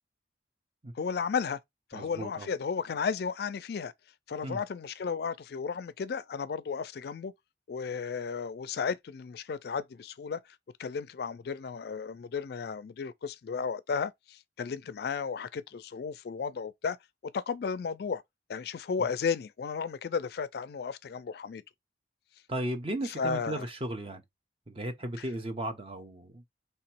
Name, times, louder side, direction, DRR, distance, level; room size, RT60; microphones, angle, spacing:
voice 1, 0.9-1.6 1.9-3.9 4.3-7.3 7.7-10.4 10.8-17.0 17.3-18.2 18.5-21.6 23.0-23.6 25.2-25.3, left 6 dB, 60° left, 0.4 m, -34 dB
voice 2, 1.9-2.5 4.4-4.6 22.5-24.2 24.7-26.4, right 1 dB, 30° right, 0.7 m, -35 dB
3.4 x 2.9 x 4.4 m
head